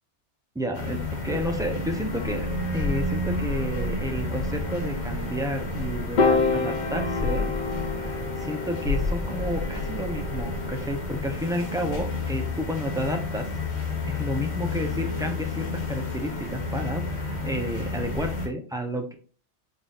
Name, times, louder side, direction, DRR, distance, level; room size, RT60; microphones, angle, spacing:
voice 1, 0.5-2.5 2.7-7.5 8.4-13.5 14.0-19.1, equal, 5° right, 4 dB, 0.4 m, -31 dB
sound 1, 0.7-18.5, left 2 dB, 70° left, 1.5 m, -31 dB
sound 2, 2.7-12.6, left 3 dB, 85° right, 1.1 m, -34 dB
Piano, 6.2-12.6, left 4 dB, 50° left, 0.6 m, -29 dB
3.9 x 3.8 x 2.4 m, 0.40 s
omnidirectional pair, 1.2 m